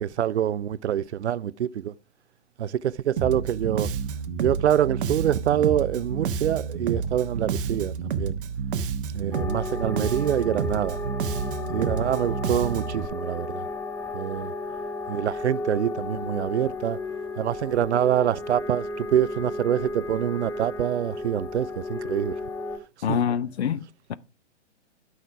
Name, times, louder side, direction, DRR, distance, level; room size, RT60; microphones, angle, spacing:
voice 1, 0.0-1.9 2.6-3.9 4.4-8.4 9.1-11.0 11.7-13.6 14.1-14.5 15.1-17.0 17.4-22.4 23.1-23.2, right 10 dB, 70° right, 0.6 m, -25 dB
Bass guitar, 3.2-13.1, right 6 dB, 50° right, 1.2 m, -30 dB
sound 1, 9.3-22.8, left 2 dB, 5° left, 1.4 m, -33 dB
voice 2, 23.0-24.2, left 8 dB, 65° left, 0.9 m, -26 dB
12.5 x 6.4 x 4.8 m
figure-of-eight pair, 110°, 35 cm